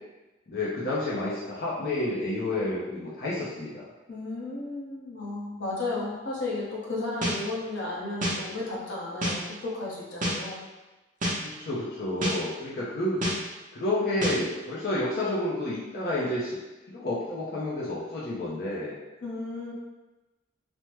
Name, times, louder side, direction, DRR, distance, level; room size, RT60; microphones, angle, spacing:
voice 1, 0.5-3.9 11.4-13.2 13.7-16.6 16.9-19.0, left 1 dB, 55° left, -7 dB, 0.5 m, -30 dB
voice 2, 4.1-10.6 19.2-19.7, left 2 dB, 85° left, -5 dB, 0.8 m, -34 dB
sound 1, 7.2-7.4 8.2-8.4 9.2-9.4 10.2-10.4 11.2-11.4 12.2-12.4 13.2-13.4 14.2-14.4, equal, 45° right, 0.6 m, -27 dB
3.3 x 2.0 x 3.0 m, 1.1 s
head